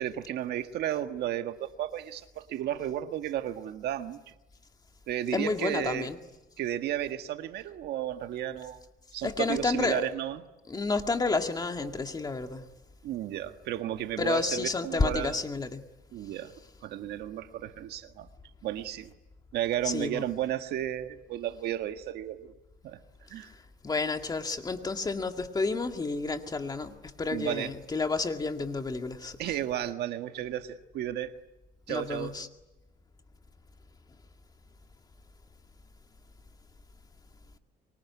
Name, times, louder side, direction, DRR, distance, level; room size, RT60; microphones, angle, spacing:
voice 1, 0.0-4.3 5.1-6.1 6.6-8.8 9.1-10.4 13.0-15.4 16.1-16.5 16.8-18.3 18.6-19.1 19.5-22.5 22.8-23.0 23.3-23.5 27.3-27.7 29.4-31.3 31.9-32.3, right 12 dB, 75° right, 1.6 m, -33 dB
voice 2, 5.3-6.2 9.2-10.1 10.7-12.6 14.2-15.8 19.8-20.2 23.4-23.5 23.8-29.6 31.9-32.5, left 3 dB, 25° left, 2.2 m, -30 dB
25.5 x 23.5 x 9.7 m
cardioid pair, 110°, 17 cm